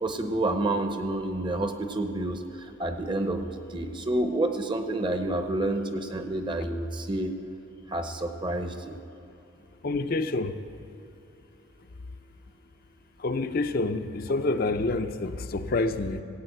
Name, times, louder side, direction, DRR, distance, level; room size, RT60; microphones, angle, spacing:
voice 1, 0.0-7.3 7.9-9.0, right 1 dB, 20° right, 7 dB, 0.7 m, -29 dB
voice 2, 9.8-10.6 13.2-16.2, left 2 dB, 45° left, 7 dB, 0.5 m, -27 dB
15.0 x 8.7 x 7.9 m, 2.9 s
head